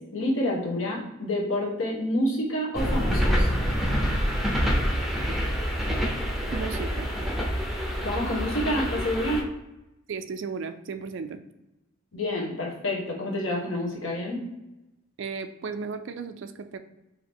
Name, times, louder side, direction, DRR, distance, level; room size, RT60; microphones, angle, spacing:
voice 1, 0.1-3.5 8.0-9.5 12.1-14.4, left 1 dB, 75° left, -1 dB, 1.2 m, -28 dB
sound 1, 2.7-9.4, equal, ahead, 0.6 m, -26 dB
voice 2, 6.5-7.1 10.1-11.4 15.2-16.8, right 5 dB, 60° right, 10 dB, 0.4 m, -35 dB
4.8 x 2.7 x 3.5 m, 0.96 s
head